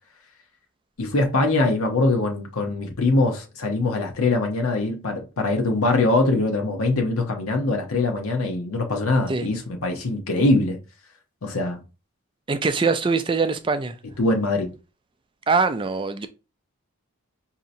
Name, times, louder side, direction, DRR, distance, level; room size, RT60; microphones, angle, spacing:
voice 1, 1.0-10.8 11.4-11.8 14.2-14.7, left 2 dB, 75° left, 0.8 m, -22 dB
voice 2, 12.5-14.0 15.5-16.3, right 4 dB, 20° right, 0.3 m, -22 dB
5.2 x 2.8 x 2.6 m
head